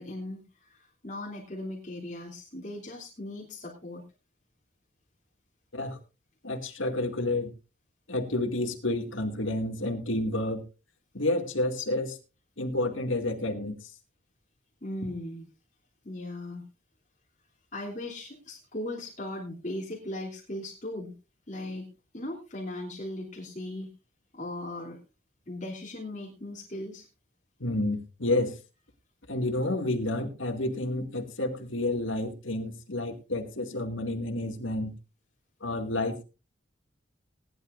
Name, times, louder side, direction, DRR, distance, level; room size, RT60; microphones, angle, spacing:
voice 1, 0.0-4.0 14.8-15.5 16.0-16.6 17.7-21.1 21.5-21.9 22.1-23.9 24.3-25.0 25.5-27.1, left 1 dB, 40° left, -3 dB, 3.1 m, -38 dB
voice 2, 6.4-7.5 8.1-10.6 11.1-12.2 12.6-13.9 27.6-28.6 29.3-34.9 35.6-36.2, left 2 dB, 80° left, 4 dB, 2.2 m, -30 dB
19.0 x 11.0 x 2.6 m, 0.29 s
head